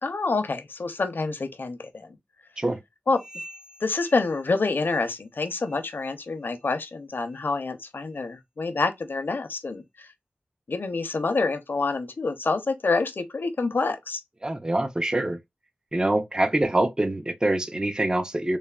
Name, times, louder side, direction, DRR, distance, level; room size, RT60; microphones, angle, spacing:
voice 1, 0.0-2.2 3.1-3.2 3.8-10.1 10.7-14.2, left 3 dB, 70° left, 0.6 m, -27 dB
sound 1, 3.1-5.3 5.6-6.0 6.4-6.7 7.3-7.4 8.1-8.2 9.0-9.1, right 1 dB, 50° right, 1.7 m, -47 dB
voice 2, 14.4-15.4 15.9-18.6, right 1 dB, 20° right, 0.4 m, -25 dB
3.3 x 2.1 x 2.2 m
wide cardioid pair, 60°, 4 cm